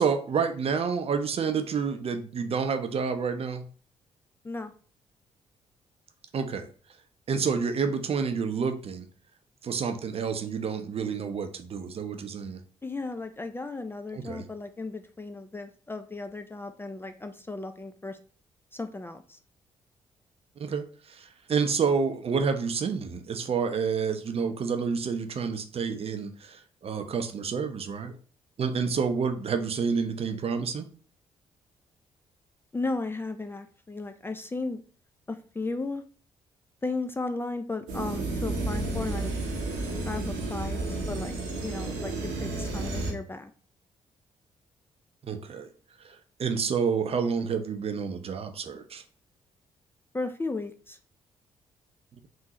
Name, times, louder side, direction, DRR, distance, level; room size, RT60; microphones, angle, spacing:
voice 1, 0.0-3.6 6.3-6.7 7.3-9.0 9.6-12.6 14.1-14.5 20.6-20.9 21.2-28.1 28.6-30.9 45.2-45.7 46.0-46.1 46.4-49.0, right 6 dB, 40° right, 8 dB, 0.5 m, -29 dB
voice 2, 12.8-18.2 18.7-19.4 32.7-34.8 35.3-36.0 36.8-39.3 40.0-41.3 41.6-43.5 50.1-51.0, left 3 dB, 15° left, 8 dB, 0.3 m, -35 dB
sound 1, 37.9-43.1, right 2 dB, 80° right, 0.8 m, -31 dB
3.7 x 2.6 x 2.8 m, 0.42 s
figure-of-eight pair, 40°, 15 cm